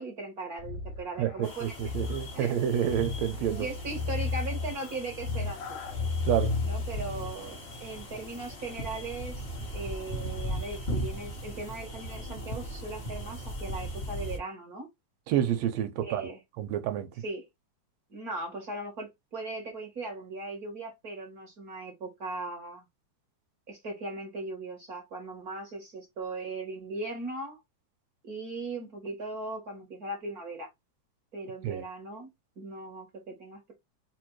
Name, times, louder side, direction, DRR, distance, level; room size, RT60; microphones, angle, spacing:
voice 1, 0.0-1.8 2.3-2.6 3.6-5.8 6.6-9.4 9.7-14.9 16.0-16.4 17.2-17.4 18.1-22.9 23.7-27.6 28.2-30.7 31.3-32.3 32.6-33.7, right 2 dB, 40° right, 1.4 m, -38 dB
sound 1, 0.6-7.5, left 4 dB, 85° left, 2.2 m, -34 dB
voice 2, 1.2-3.7 6.3-6.6 15.3-16.3 16.6-17.1 31.6-31.8, right 10 dB, 75° right, 1.7 m, -29 dB
sound 2, 1.4-14.4, equal, 55° left, 0.6 m, -39 dB
4.4 x 2.6 x 4.6 m
omnidirectional pair, 3.4 m